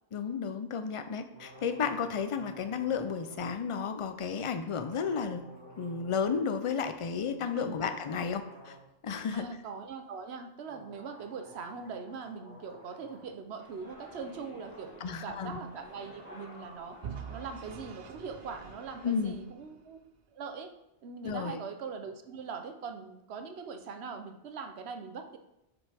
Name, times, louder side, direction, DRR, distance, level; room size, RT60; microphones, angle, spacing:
voice 1, 0.1-5.4 5.8-8.7 9.0-9.5 15.0-15.6 19.0-19.4 21.2-21.6, left 6 dB, 45° left, 9 dB, 0.4 m, -32 dB
sound 1, 1.3-3.5 4.6-6.4 7.2-8.9 9.1-9.2 10.7-13.3 14.3-14.4 14.6-17.9, right 1 dB, 25° right, 1.7 m, -52 dB
voice 2, 9.3-17.0 17.3-20.0 20.3-20.7 21.0-25.4, right 5 dB, 75° right, 7 dB, 1.0 m, -41 dB
sound 2, 13.6-19.2, left 1 dB, 30° left, 2.7 m, -53 dB
Vehicle / Engine, 17.0-20.0, right 7 dB, 55° right, 0.5 m, -45 dB
7.3 x 6.1 x 3.5 m, 0.85 s
omnidirectional pair, 1.1 m